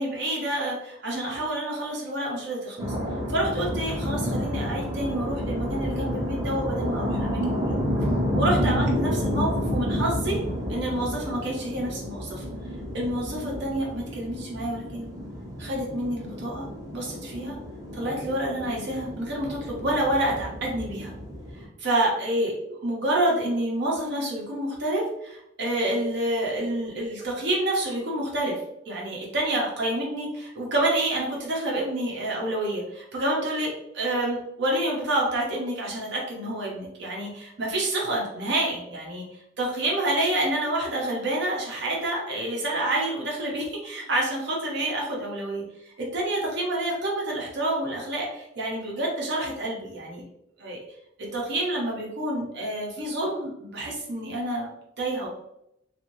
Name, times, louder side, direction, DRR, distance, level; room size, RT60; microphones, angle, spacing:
voice 1, 0.0-2.9 3.3-7.7 8.3-10.4 10.7-12.4 12.9-15.1 15.6-16.7 16.9-17.6 17.9-21.1 21.8-28.5 28.9-39.2 39.6-50.2 50.6-50.8 51.3-54.7 55.0-55.3, right 1 dB, 60° right, -2 dB, 0.7 m, -28 dB
sound 1, 2.8-21.6, equal, 20° right, 0.6 m, -30 dB
2.6 x 2.4 x 2.9 m, 0.82 s
head